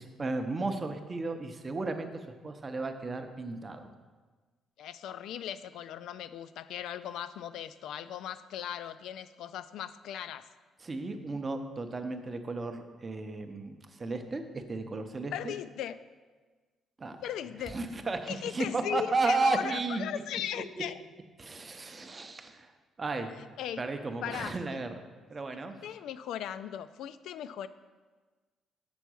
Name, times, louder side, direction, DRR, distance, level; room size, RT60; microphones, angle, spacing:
voice 1, 0.0-2.1 2.4-3.9 10.8-15.5 17.0-17.2 17.7-20.2 21.4-22.7 23.0-23.4 23.8-24.9 25.3-25.7, right 3 dB, 25° right, 7 dB, 0.6 m, -34 dB
voice 2, 4.8-10.5 15.3-16.0 17.2-17.8 18.3-21.0 23.1-23.8 24.2-24.8 25.5-27.7, left 10 dB, 75° left, 13 dB, 0.3 m, -38 dB
6.9 x 4.4 x 6.2 m, 1.4 s
cardioid pair, 145°, 0 cm